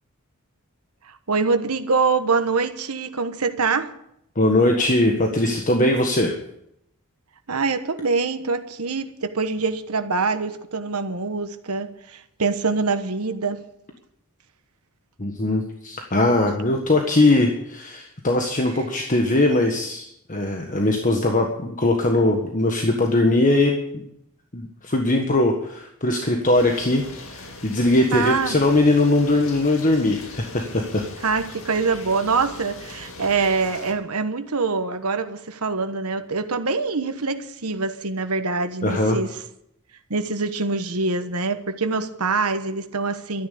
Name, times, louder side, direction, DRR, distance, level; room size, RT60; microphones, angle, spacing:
voice 1, 1.3-3.9 7.5-13.6 28.1-28.6 31.2-39.3 40.1-43.5, right 4 dB, 85° right, 1.3 m, -24 dB
voice 2, 4.3-6.3 15.2-24.0 24.5-31.0 38.8-39.2, left 2 dB, 35° left, 1.5 m, -20 dB
sound 1, 26.5-33.9, left 2 dB, 65° left, 2.5 m, -40 dB
13.0 x 10.5 x 8.5 m
head